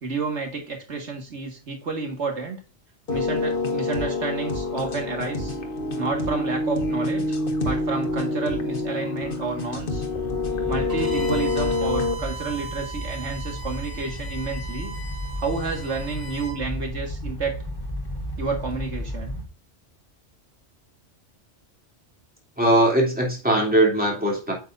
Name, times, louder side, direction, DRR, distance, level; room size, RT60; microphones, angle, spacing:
voice 1, 0.0-2.6 3.1-5.6 6.0-7.3 7.6-10.1 10.7-14.9 15.4-17.6 18.4-19.4, right 4 dB, 85° right, 2 dB, 2.1 m, -30 dB
sound 1, 3.1-12.1, left 2 dB, 50° left, 1.4 m, -26 dB
sound 2, 10.1-19.4, equal, 20° left, 1.3 m, -33 dB
Bowed string instrument, 10.9-16.6, right 3 dB, 50° right, 3.7 m, -39 dB
voice 2, 22.6-24.5, right 1 dB, 10° right, -2 dB, 2.9 m, -20 dB
8.7 x 6.8 x 2.6 m, 0.34 s
omnidirectional pair, 1.2 m